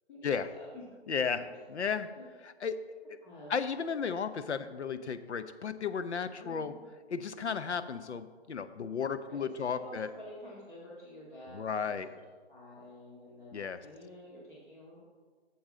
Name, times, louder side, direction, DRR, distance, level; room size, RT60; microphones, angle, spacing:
voice 1, 0.1-0.9 1.5-1.6 2.1-2.2 3.2-3.6 6.4-6.8 9.3-12.2 12.5-15.0, left 1 dB, 50° left, -5 dB, 2.0 m, -49 dB
voice 2, 1.1-1.4 1.7-2.1 2.6-2.8 3.5-6.7 7.1-10.1 11.5-12.1 13.5-13.8, left 6 dB, 80° left, 12 dB, 0.7 m, -34 dB
8.6 x 7.1 x 3.7 m, 1.5 s
figure-of-eight pair, 145°, 34 cm